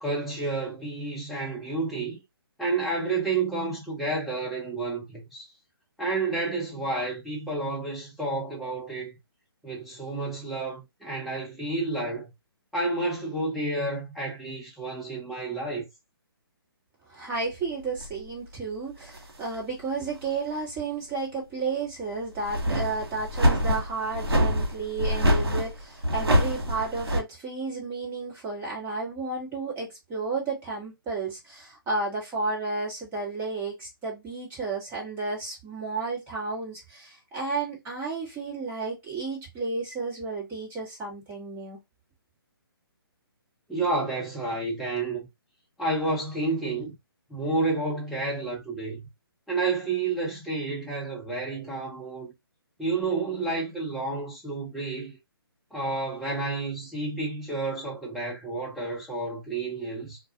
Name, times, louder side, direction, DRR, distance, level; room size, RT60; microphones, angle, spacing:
voice 1, 0.0-2.2 2.6-5.5 6.0-9.1 9.6-12.3 12.7-15.9 43.7-45.3 45.8-46.9 47.3-49.1 49.5-52.3 52.8-55.1 55.7-60.2, right 3 dB, ahead, 0.8 m, -30 dB
voice 2, 17.1-41.8, right 3 dB, 15° right, 1.2 m, -32 dB
sound 1, 18.0-18.2 19.0-19.6 20.1-20.2 22.4-27.2, equal, 80° right, 1.0 m, -25 dB
2.3 x 2.3 x 2.7 m
hypercardioid pair, 145°, 13 cm